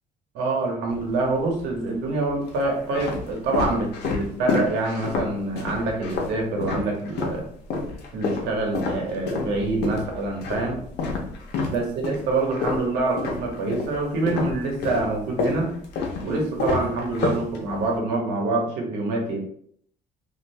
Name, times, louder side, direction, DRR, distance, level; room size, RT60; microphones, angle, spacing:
voice 1, 0.3-7.4 8.1-10.8 11.7-15.8 16.2-19.4, right 2 dB, 85° right, 1 dB, 0.9 m, -26 dB
sound 1, 0.9-1.6 2.3-7.4 7.7-14.0 14.3-18.0, left 3 dB, 80° left, 0.7 m, -29 dB
2.6 x 2.6 x 3.2 m, 0.64 s
cardioid pair, 110°, 17 cm